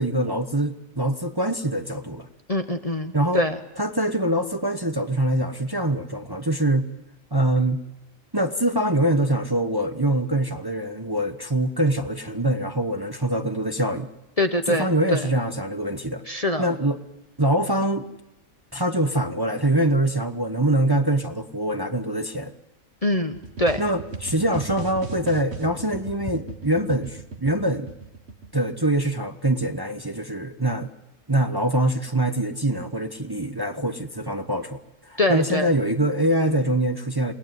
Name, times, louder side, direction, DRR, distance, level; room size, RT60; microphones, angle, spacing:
voice 1, 0.0-2.3 3.1-3.4 3.8-6.9 7.3-7.8 8.3-14.1 14.7-16.2 16.6-17.0 17.4-18.1 18.7-22.5 23.8-27.9 28.5-30.9 31.3-37.3, right 1 dB, 20° right, 7 dB, 1.0 m, -24 dB
voice 2, 2.5-3.6 14.4-15.3 16.3-16.7 23.0-23.8 35.2-35.7, left 1 dB, 30° left, 7 dB, 0.9 m, -24 dB
sound 1, 23.3-29.0, right 4 dB, 50° right, 2.0 m, -37 dB
28.0 x 18.5 x 9.4 m, 0.96 s
omnidirectional pair, 1.4 m